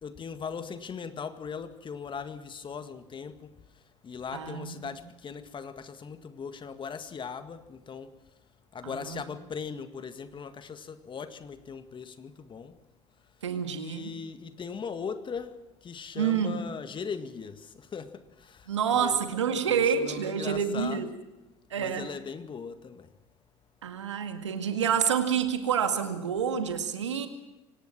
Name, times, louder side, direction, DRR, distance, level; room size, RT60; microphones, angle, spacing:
voice 1, 0.0-3.5 4.0-8.1 8.7-12.8 13.7-21.2 21.7-23.1, left 6 dB, 35° left, 1.9 m, -39 dB
voice 2, 4.3-4.8 9.0-9.2 13.4-14.1 16.1-16.6 18.7-21.1 21.7-22.1 23.8-27.3, right 7 dB, 85° right, 2.0 m, -28 dB
24.5 x 18.5 x 6.1 m
hypercardioid pair, 65°, 15 cm